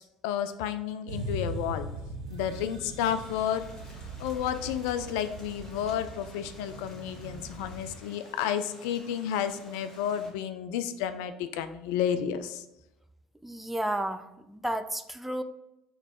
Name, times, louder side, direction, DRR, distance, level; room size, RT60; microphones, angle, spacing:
voice 1, 0.0-1.9 2.3-3.6 4.2-12.6, left 9 dB, 65° left, 10 dB, 0.3 m, -31 dB
sound 1, 1.1-8.0, right 2 dB, 80° right, 0.5 m, -40 dB
Rain, 3.0-10.3, left 1 dB, 20° left, 1.5 m, -52 dB
voice 2, 13.4-15.4, right 1 dB, 5° right, 9 dB, 0.4 m, -32 dB
4.0 x 3.0 x 4.1 m, 0.92 s
figure-of-eight pair, 60°, 3 cm